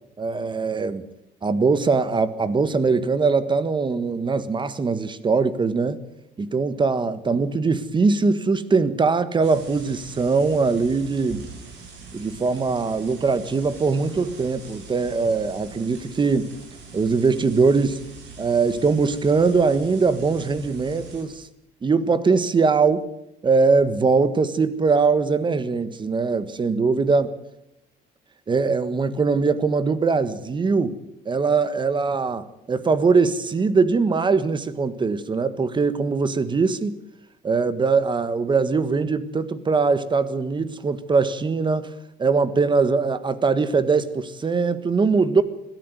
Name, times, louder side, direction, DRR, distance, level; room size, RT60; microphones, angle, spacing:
voice 1, 0.2-1.1 1.4-6.0 6.4-11.4 12.1-16.5 16.9-18.0 18.4-21.5 21.8-23.0 23.4-27.3 28.5-31.0 31.2-36.9 37.4-41.9 42.2-45.4, right 4 dB, 25° right, 1.5 m, -21 dB
sound 1, 9.4-21.2, right 5 dB, 90° right, 6.8 m, -42 dB
21.0 x 13.5 x 9.3 m
cardioid pair, 115°, 18 cm